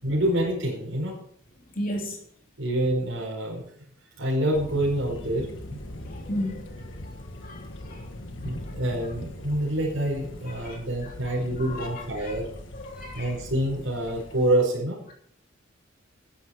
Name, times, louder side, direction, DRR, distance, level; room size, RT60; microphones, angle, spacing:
voice 1, 0.0-1.1 2.6-3.6 4.2-5.8 8.4-12.5 13.1-15.1, right 1 dB, 85° right, 5.0 m, -27 dB
voice 2, 1.7-2.2 6.1-8.1 8.6-8.7 10.6-12.3 12.7-13.4, equal, 45° left, 3.2 m, -36 dB
Thunder, 4.5-14.6, left 1 dB, 65° left, 1.6 m, -41 dB
13.0 x 11.0 x 4.7 m
head